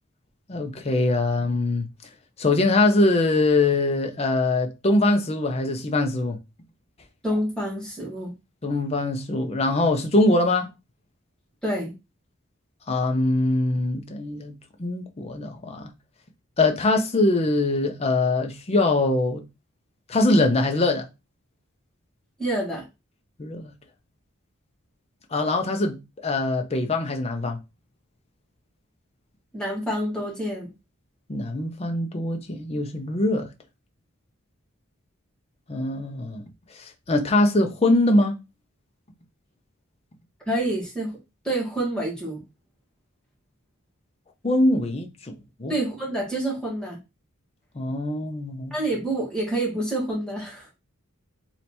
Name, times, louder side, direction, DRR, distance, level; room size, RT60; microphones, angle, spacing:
voice 1, 0.5-1.9 2.4-6.4 8.6-10.7 12.9-14.5 14.8-15.9 16.6-19.4 20.1-21.1 23.4-23.7 25.3-27.6 31.3-33.5 35.7-36.4 36.8-38.3 44.4-45.7 47.7-48.8, left 2 dB, 30° left, 0.6 m, -23 dB
voice 2, 7.2-8.3 11.6-11.9 22.4-22.8 29.5-30.7 40.5-41.1 41.4-42.4 45.7-47.0 48.7-50.7, right 1 dB, 5° left, 1.7 m, -27 dB
3.3 x 2.8 x 4.3 m
head